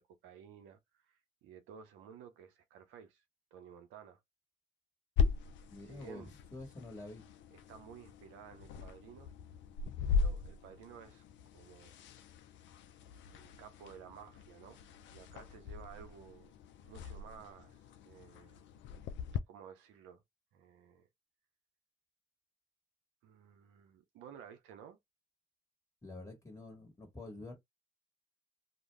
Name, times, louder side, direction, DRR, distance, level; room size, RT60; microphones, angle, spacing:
voice 1, 0.0-3.2 3.5-4.2 5.9-6.3 7.5-9.3 10.1-11.2 11.5-11.9 13.3-14.8 15.1-16.5 16.8-17.8 18.0-18.7 19.5-20.2 20.5-21.1 23.2-25.0, right 8 dB, 80° right, 0.6 m, -54 dB
sound 1, 5.2-19.4, left 5 dB, 70° left, 0.4 m, -39 dB
voice 2, 5.7-7.3 26.0-27.5, left 2 dB, 15° left, 1.3 m, -48 dB
2.3 x 2.1 x 3.2 m
hypercardioid pair, 45°, 20 cm